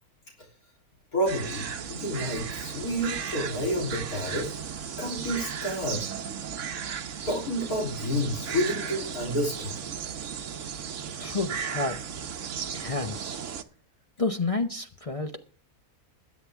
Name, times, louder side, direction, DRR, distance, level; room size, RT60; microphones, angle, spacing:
voice 1, 1.1-4.7 5.0-6.1 7.3-9.8, equal, 75° left, 3.8 m, -30 dB
sound 1, 1.3-13.6, right 7 dB, 60° right, 1.2 m, -35 dB
voice 2, 11.2-12.0 12.7-13.4 14.2-15.4, left 3 dB, 30° left, 0.7 m, -30 dB
21.0 x 8.4 x 3.5 m
omnidirectional pair, 1.6 m